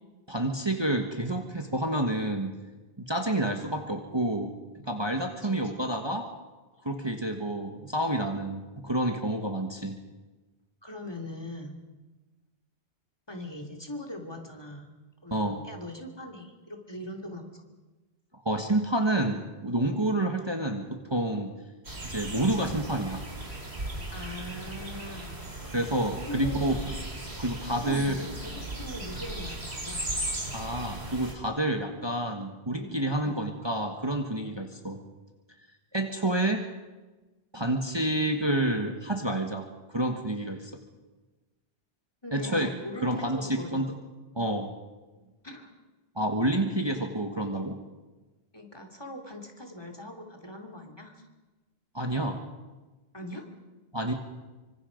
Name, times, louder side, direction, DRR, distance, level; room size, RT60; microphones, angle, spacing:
voice 1, 0.3-2.5 3.0-4.5 4.8-6.3 6.8-10.0 15.3-15.6 18.4-21.5 22.0-23.2 25.7-26.7 27.4-28.1 30.5-35.0 35.9-36.6 37.5-40.7 42.3-42.7 43.0-43.9 44.3-44.7 46.1-47.8 51.9-52.4 53.9-54.1, right 1 dB, 25° right, 4 dB, 1.6 m, -29 dB
voice 2, 10.8-11.8 13.3-14.9 15.2-17.6 20.2-20.4 24.1-25.4 26.3-26.9 27.7-30.0 32.7-33.4 42.2-43.9 45.4-45.7 48.5-51.2 53.1-53.4, left 1 dB, 25° left, 4 dB, 2.9 m, -41 dB
sound 1, 21.8-31.3, right 1 dB, 75° right, 3.7 m, -37 dB
25.5 x 25.0 x 5.3 m, 1.2 s
omnidirectional pair, 1.1 m